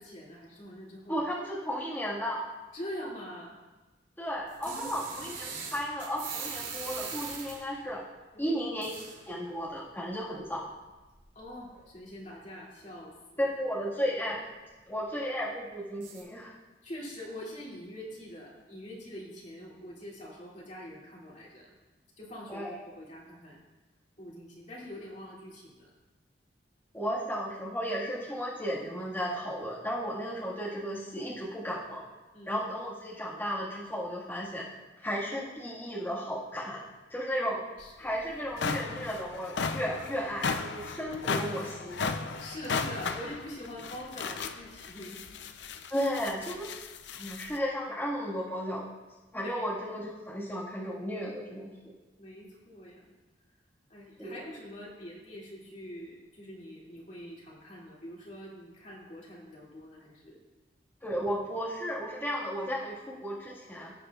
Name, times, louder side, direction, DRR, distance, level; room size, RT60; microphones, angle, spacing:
voice 1, 0.0-1.2 2.7-3.5 4.6-4.9 8.3-8.6 11.3-13.5 16.8-21.7 22.2-22.7 23.0-23.6 24.2-25.9 32.3-32.6 37.8-38.1 41.2-41.7 42.4-45.2 49.3-49.6 52.2-53.0 53.9-60.4, equal, 45° left, -5 dB, 2.5 m, -44 dB
voice 2, 1.1-2.4 4.2-8.0 8.4-8.9 9.2-10.6 13.4-14.5 14.9-16.5 22.5-22.7 26.9-32.0 32.5-34.6 35.0-36.8 37.1-37.6 38.0-42.0 45.9-46.7 47.1-48.9 49.3-51.7 54.2-54.4 61.0-63.9, equal, 10° left, -8 dB, 1.7 m, -34 dB
sound 1, 4.5-7.8 8.8-9.2 10.5-10.6 11.2-11.3 11.7-11.8 16.0-16.2, right 6 dB, 70° right, 3.8 m, -40 dB
sound 2, 37.8-37.9 38.3-47.6, left 4 dB, 75° left, 0.5 m, -35 dB
16.5 x 8.2 x 2.4 m, 1.2 s
head